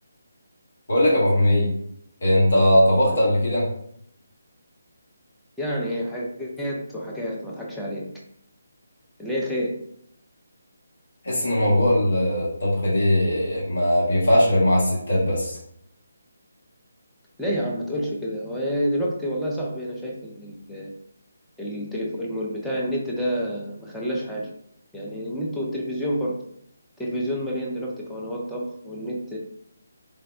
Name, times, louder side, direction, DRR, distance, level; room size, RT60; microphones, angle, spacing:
voice 1, 0.9-1.7 2.2-3.7 11.2-15.6, left 1 dB, 55° left, -6 dB, 1.1 m, -20 dB
voice 2, 5.6-8.0 9.2-9.8 17.4-20.9 21.6-24.5 24.9-26.4 27.0-29.4, equal, ahead, -5 dB, 0.4 m, -29 dB
3.4 x 2.1 x 2.3 m, 0.71 s
figure-of-eight pair, 150°, 0 cm